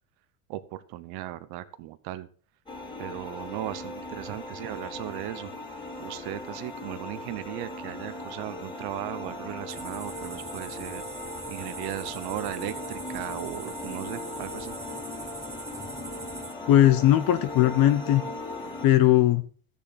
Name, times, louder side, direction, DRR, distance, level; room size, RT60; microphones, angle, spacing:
voice 1, 0.5-2.3 3.0-5.5 6.0-11.0 11.5-14.7, right 15 dB, 50° right, 13 dB, 0.9 m, -37 dB
sound 1, 2.7-18.9, left 2 dB, 10° left, 3.2 m, -38 dB
sound 2, 9.7-16.5, right 4 dB, 10° right, 0.5 m, -42 dB
voice 2, 16.7-18.2 18.8-19.4, left 13 dB, 45° left, 11 dB, 1.0 m, -19 dB
14.0 x 7.0 x 4.1 m, 0.41 s
supercardioid pair, 120°, 49 cm